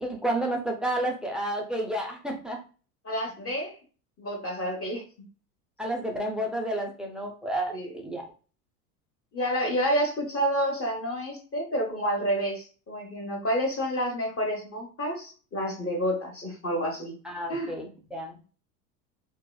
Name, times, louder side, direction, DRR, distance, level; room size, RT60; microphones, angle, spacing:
voice 1, 0.0-2.6 5.8-8.3 17.2-18.4, right 1 dB, ahead, 0 dB, 0.4 m, -31 dB
voice 2, 3.0-3.8 4.2-5.0 7.7-7.9 9.3-17.1 17.5-17.7, equal, 30° left, -1 dB, 0.9 m, -29 dB
2.8 x 2.1 x 2.2 m, 0.37 s
hypercardioid pair, 75°, 47 cm